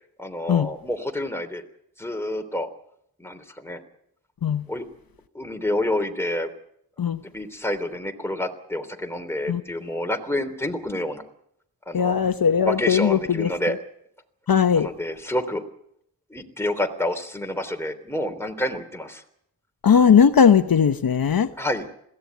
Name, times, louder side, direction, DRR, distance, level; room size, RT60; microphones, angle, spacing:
voice 1, 0.2-1.6 2.0-2.7 3.2-3.8 4.7-4.8 5.3-6.5 7.2-11.2 11.9-12.2 12.6-13.8 14.7-15.6 16.3-19.2 21.6-21.9, left 1 dB, 5° left, 3.3 m, -28 dB
voice 2, 11.9-13.5 14.5-14.9 19.8-21.5, left 7 dB, 60° left, 1.0 m, -18 dB
21.5 x 16.5 x 9.3 m
wide cardioid pair, 75°, 40 cm